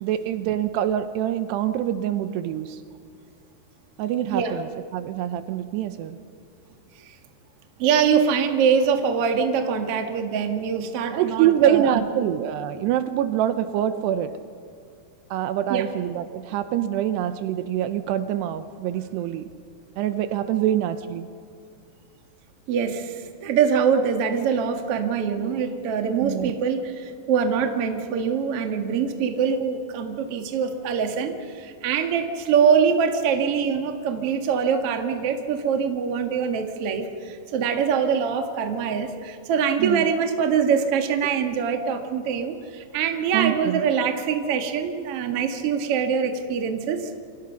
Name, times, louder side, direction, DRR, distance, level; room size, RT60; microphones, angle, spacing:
voice 1, 0.0-2.8 4.0-6.2 11.1-14.3 15.3-19.5 20.0-21.3 26.2-26.5 39.8-40.1 43.3-43.8, right 11 dB, 80° right, 11 dB, 2.8 m, -25 dB
voice 2, 7.8-12.3 15.7-15.9 22.7-47.1, right 6 dB, 50° right, 5 dB, 1.8 m, -24 dB
28.0 x 26.0 x 5.9 m, 2.2 s
omnidirectional pair, 5.1 m